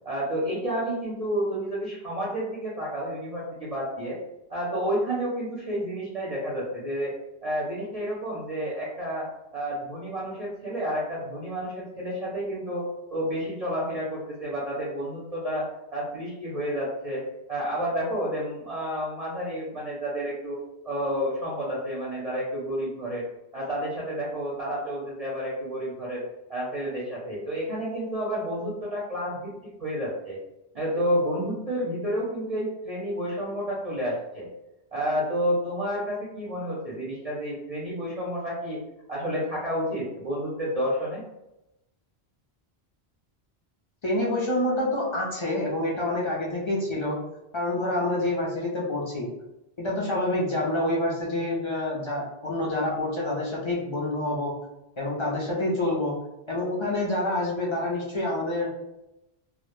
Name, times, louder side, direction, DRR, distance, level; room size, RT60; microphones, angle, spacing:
voice 1, 0.0-4.2 4.5-7.1 7.4-9.3 9.5-12.9 13.1-15.6 15.9-17.2 17.5-20.6 20.8-23.2 23.5-26.2 26.5-29.5 29.8-30.4 30.7-34.5 34.9-38.8 39.1-41.2, equal, 45° right, -6 dB, 0.5 m, -30 dB
voice 2, 44.0-47.2 47.5-49.3 49.8-54.5 55.0-56.1 56.5-58.7, left 1 dB, 55° left, -4 dB, 0.3 m, -27 dB
2.1 x 2.0 x 2.9 m, 0.93 s
omnidirectional pair, 1.1 m